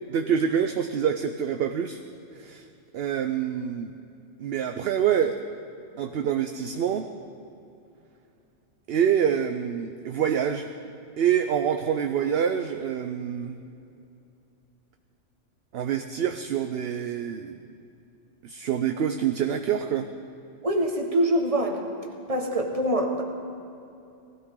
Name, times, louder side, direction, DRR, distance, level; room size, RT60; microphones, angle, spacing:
voice 1, 0.1-2.0 2.4-2.6 2.9-3.9 4.4-5.4 6.0-7.1 8.9-10.7 11.2-13.6 15.7-17.6 18.4-20.1, right 8 dB, 60° right, 7 dB, 0.8 m, -26 dB
voice 2, 20.6-21.8 22.3-23.2, right 1 dB, 30° right, 1 dB, 1.6 m, -24 dB
19.0 x 16.5 x 3.8 m, 2.7 s
omnidirectional pair, 1.2 m